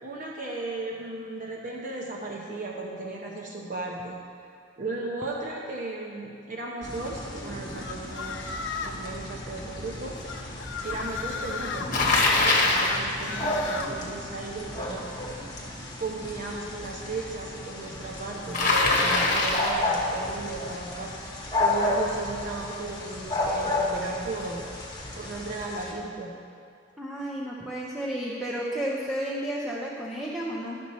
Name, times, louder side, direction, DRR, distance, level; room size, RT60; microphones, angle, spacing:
voice 1, 0.0-4.1 4.8-8.5 8.8-10.2 10.8-11.9 12.3-15.1 16.0-21.1 21.6-24.6 25.1-26.3, right 2 dB, 40° right, -2 dB, 0.8 m, -35 dB
sound 1, 6.8-25.9, left 2 dB, 20° left, 1.3 m, -33 dB
sound 2, 7.8-9.0 10.2-11.9 12.8-13.9, left 5 dB, 65° left, 0.6 m, -35 dB
Bicycle, 11.9-13.0 18.5-19.8, left 2 dB, 40° left, 1.1 m, -22 dB
voice 2, 27.0-30.8, right 1 dB, ahead, -7 dB, 0.6 m, -32 dB
12.0 x 6.2 x 4.2 m, 2.3 s
head